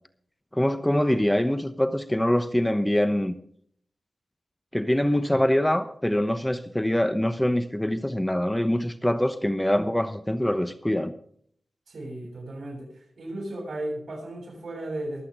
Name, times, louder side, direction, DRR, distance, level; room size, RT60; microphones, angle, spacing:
voice 1, 0.5-3.4 4.7-11.1, left 1 dB, 10° left, 1.0 m, -24 dB
voice 2, 11.9-15.3, right 1 dB, 75° right, 7.8 m, -35 dB
23.5 x 8.6 x 3.7 m
wide cardioid pair, 70°, 0 cm